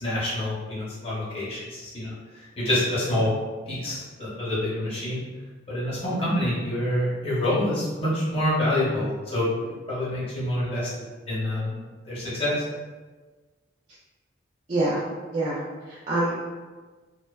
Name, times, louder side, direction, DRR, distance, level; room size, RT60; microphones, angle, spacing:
voice 1, 0.0-3.3 3.7-5.2 5.7-9.5 9.9-10.9 11.3-11.7 12.1-12.6, left 1 dB, 30° left, -9 dB, 0.8 m, -27 dB
voice 2, 14.7-15.0 15.3-16.4, right 2 dB, 35° right, -9 dB, 0.4 m, -26 dB
2.6 x 2.1 x 2.3 m, 1.3 s
head